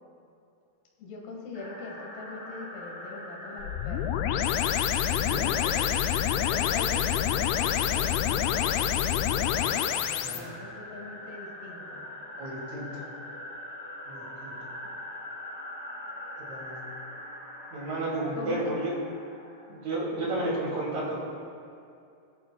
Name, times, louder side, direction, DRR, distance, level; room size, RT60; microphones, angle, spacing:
voice 1, 1.0-4.7 5.1-6.1 6.5-12.0 18.4-18.8 20.2-20.5, left 3 dB, 70° left, -1 dB, 3.4 m, -42 dB
sound 1, 1.5-20.6, left 1 dB, 20° left, 1.6 m, -42 dB
sound 2, 3.6-10.4, left 10 dB, 85° left, 2.3 m, -27 dB
voice 2, 12.4-13.1 14.1-14.5 16.4-16.8 17.7-18.9 19.7-21.2, right 2 dB, 45° right, -5 dB, 3.3 m, -32 dB
15.5 x 11.5 x 2.3 m, 2.4 s
omnidirectional pair, 5.0 m